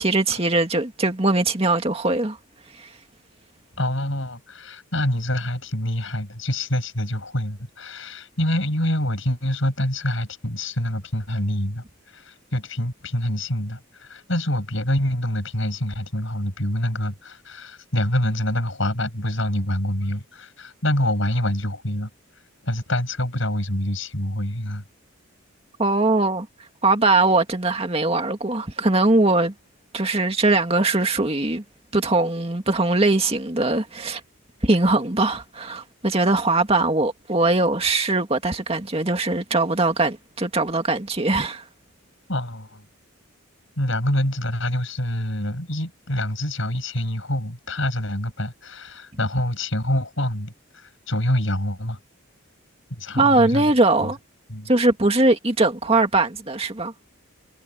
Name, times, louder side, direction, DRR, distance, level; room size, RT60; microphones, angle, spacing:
voice 1, 0.0-2.4 2.8-2.9 25.8-26.5 26.8-29.5 29.9-31.6 31.9-34.2 34.6-41.6 53.2-54.2 54.7-56.9, right 2 dB, 25° right, 2.2 m, -21 dB
voice 2, 3.8-22.1 22.6-24.8 42.3-42.8 43.8-52.0 52.9-53.7 54.0-54.1 54.5-54.7, left 1 dB, 60° left, 7.9 m, -26 dB
head